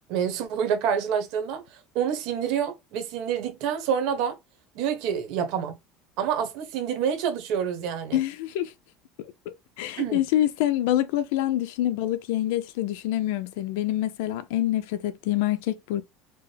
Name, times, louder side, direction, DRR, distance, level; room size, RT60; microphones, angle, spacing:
voice 1, 0.1-1.6 1.9-4.4 4.7-5.7 6.2-8.2 10.0-10.2, right 8 dB, 60° right, 1.0 m, -27 dB
voice 2, 8.1-8.7 9.8-16.0, left 13 dB, 80° left, 0.5 m, -26 dB
4.5 x 2.0 x 3.3 m
cardioid pair, 160°, 0 cm